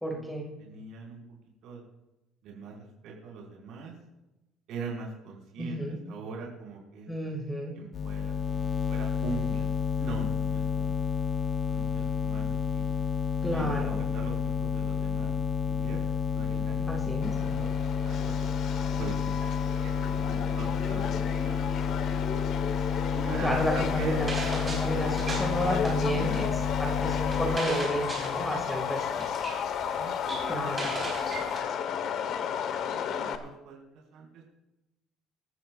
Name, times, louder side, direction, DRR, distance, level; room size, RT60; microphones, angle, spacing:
voice 1, 0.0-0.4 5.6-6.0 7.1-7.7 13.4-14.0 16.9-17.4 23.4-24.3 24.6-29.3 30.5-30.9, equal, 5° left, 1 dB, 2.0 m, -32 dB
voice 2, 0.6-1.2 1.6-1.8 2.4-3.9 4.7-5.8 6.1-7.1 7.7-9.7 10.0-11.0 11.7-12.9 13.5-13.7 14.1-15.3 15.6-16.9 17.4-18.5 19.0-22.4 23.1-24.1 25.9-26.5 29.8-31.6 32.1-32.3 32.8-33.8 34.1-34.4, right 4 dB, 60° right, -2 dB, 4.9 m, -42 dB
sound 1, 7.9-27.6, left 7 dB, 35° left, 0.5 m, -30 dB
Subway metro underground, 17.2-33.4, left 8 dB, 50° left, 1.1 m, -34 dB
sound 2, 23.5-31.6, right 3 dB, 20° right, 4.4 m, -40 dB
23.5 x 13.0 x 2.4 m, 0.95 s
cardioid pair, 165°, 0 cm